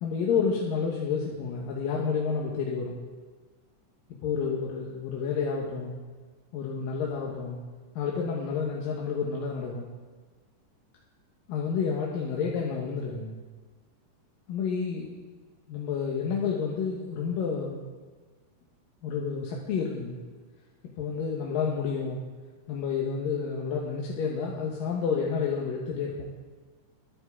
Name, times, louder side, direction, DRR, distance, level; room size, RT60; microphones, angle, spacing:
voice 1, 0.0-3.0 4.2-6.0 6.5-7.6 8.0-9.9 11.5-13.4 14.5-15.1 15.7-17.8 19.0-20.2 21.0-22.2 22.7-26.3, left 6 dB, 85° left, -2 dB, 3.0 m, -30 dB
21.0 x 12.0 x 3.7 m, 1.4 s
omnidirectional pair, 3.8 m